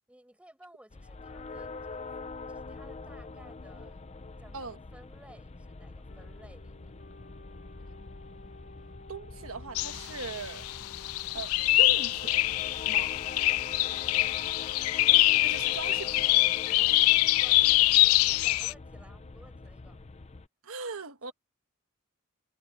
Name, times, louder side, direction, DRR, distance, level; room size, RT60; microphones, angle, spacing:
voice 1, 0.1-2.1 2.5-4.0 4.4-6.9 13.6-14.3 17.0-20.0 21.2-21.3, right 1 dB, 5° right, 7.4 m, -56 dB
sound 1, 0.9-20.5, left 3 dB, 30° left, 0.6 m, -44 dB
sound 2, 6.1-15.1, left 2 dB, 50° left, 3.9 m, -54 dB
voice 2, 9.1-10.7 11.3-12.4 12.8-13.1 15.4-16.3 20.6-21.3, right 4 dB, 75° right, 1.4 m, -39 dB
sound 3, 9.7-18.7, left 19 dB, 70° left, 0.3 m, -24 dB
head